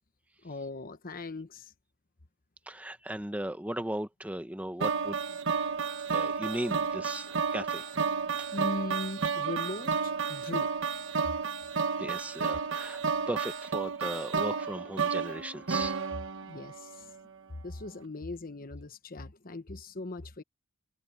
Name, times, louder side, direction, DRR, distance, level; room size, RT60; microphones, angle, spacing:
voice 1, 0.4-1.7 8.5-10.7 11.2-11.4 16.4-17.1 17.6-20.4, left 2 dB, 40° left, 1.1 m, -39 dB
voice 2, 2.7-5.4 6.1-7.9 8.4-8.5 11.8-13.0 13.3-16.0, right 1 dB, 5° right, 1.1 m, -37 dB
sound 1, 4.8-17.0, right 5 dB, 60° right, 1.4 m, -32 dB
head